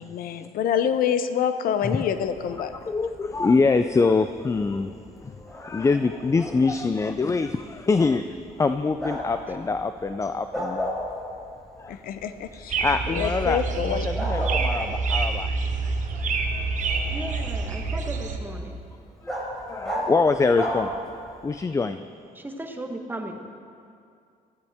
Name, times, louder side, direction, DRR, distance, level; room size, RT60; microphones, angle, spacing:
voice 1, 0.0-2.7 11.9-12.8 13.1-14.1 14.4-14.5, left 8 dB, 75° left, 10 dB, 0.7 m, -26 dB
Bark, 2.1-21.5, equal, 5° left, 3.7 m, -37 dB
voice 2, 2.7-8.2 8.6-11.3 11.8-12.0 12.5-15.5 16.1-17.2 19.2-19.4 19.7-22.0, left 4 dB, 20° left, 10 dB, 0.4 m, -25 dB
sound 1, 12.7-18.4, right 4 dB, 55° right, 1.2 m, -27 dB
voice 3, 17.1-18.8 22.3-23.4, right 1 dB, 15° right, 4 dB, 1.3 m, -36 dB
15.5 x 13.5 x 3.6 m, 2.4 s
cardioid pair, 90°, 15 cm